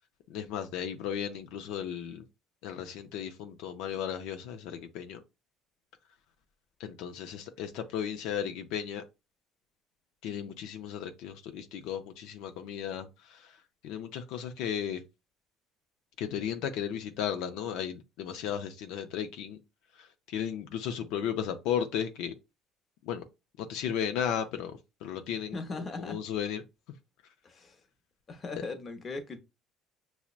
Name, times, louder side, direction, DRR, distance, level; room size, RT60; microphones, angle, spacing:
voice 1, 0.3-2.2 2.6-5.2 6.8-9.0 10.2-13.6 13.8-15.0 16.2-19.6 19.9-22.3 23.0-23.2 23.6-26.6, left 9 dB, 80° left, 0.4 m, -35 dB
voice 2, 25.5-26.2 27.4-27.8 28.3-29.4, left 3 dB, 35° left, 0.7 m, -38 dB
5.8 x 2.1 x 2.4 m
cardioid pair, 105°, 0 cm